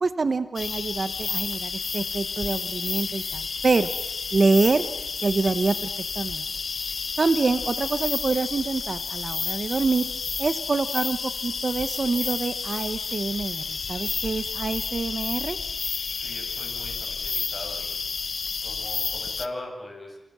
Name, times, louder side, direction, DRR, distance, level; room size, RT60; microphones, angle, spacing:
voice 1, 0.0-3.9 4.3-4.8 5.2-5.9 6.2-6.4 7.2-10.1 10.4-15.6, right 3 dB, 50° right, 11 dB, 1.0 m, -26 dB
sound 1, 0.6-19.5, left 5 dB, 75° left, 1.1 m, -31 dB
voice 2, 16.1-18.0 18.6-20.2, left 1 dB, 25° left, 1 dB, 8.0 m, -40 dB
29.0 x 26.5 x 6.2 m, 1.0 s
wide cardioid pair, 110°, 0 cm